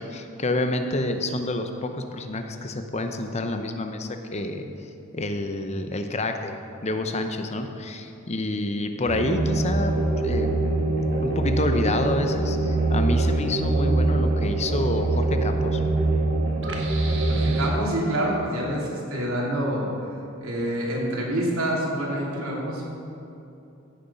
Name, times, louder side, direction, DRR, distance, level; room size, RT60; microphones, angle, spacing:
voice 1, 0.0-4.7 5.1-10.5 11.2-15.8, left 2 dB, 30° left, 6 dB, 0.8 m, -28 dB
sound 1, 9.0-17.7, right 2 dB, 60° right, 1.4 m, -23 dB
voice 2, 17.3-19.9 20.4-22.9, right 1 dB, 80° right, -3 dB, 2.8 m, -27 dB
15.5 x 7.0 x 5.5 m, 2.8 s
head